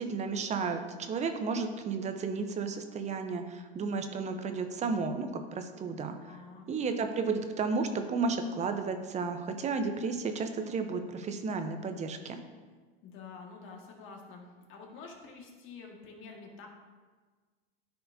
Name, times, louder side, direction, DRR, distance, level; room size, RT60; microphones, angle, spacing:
voice 1, 0.0-6.2 6.7-12.4, right 4 dB, 20° right, 7 dB, 0.8 m, -33 dB
voice 2, 6.3-6.7 13.0-16.7, left 4 dB, 40° left, 1 dB, 1.8 m, -48 dB
13.0 x 4.5 x 2.7 m, 1.4 s
hypercardioid pair, 100°, 31 cm